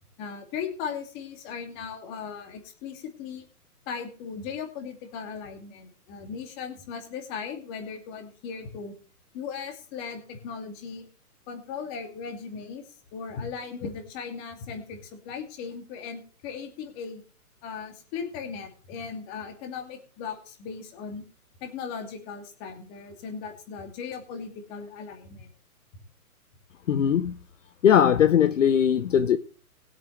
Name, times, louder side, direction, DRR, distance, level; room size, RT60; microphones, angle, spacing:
voice 1, 0.2-3.5 3.9-9.0 9.3-11.1 11.5-12.8 13.1-17.2 17.6-21.2 21.6-25.5, left 6 dB, 20° left, 2.4 m, -37 dB
voice 2, 26.9-27.4 27.8-29.4, left 9 dB, 55° left, 0.9 m, -20 dB
21.0 x 8.4 x 3.3 m
hypercardioid pair, 160°, 45 cm